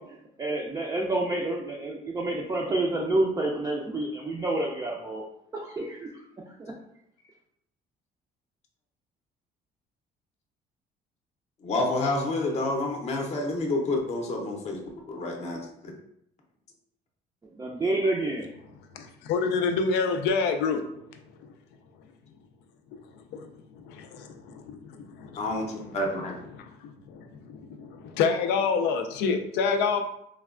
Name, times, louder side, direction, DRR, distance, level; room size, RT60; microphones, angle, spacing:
voice 1, 0.0-5.2 5.5-6.2 6.6-6.7 17.5-18.5, right 2 dB, 20° right, -2 dB, 0.4 m, -29 dB
voice 2, 11.6-14.8 15.1-15.7 25.4-26.3, left 2 dB, 40° left, 1 dB, 0.6 m, -28 dB
voice 3, 18.9-20.8 21.1-21.5 23.3-25.7 26.5-30.0, left 5 dB, 90° left, 6 dB, 0.4 m, -28 dB
3.2 x 2.2 x 2.4 m, 0.75 s
cardioid pair, 110°, 17 cm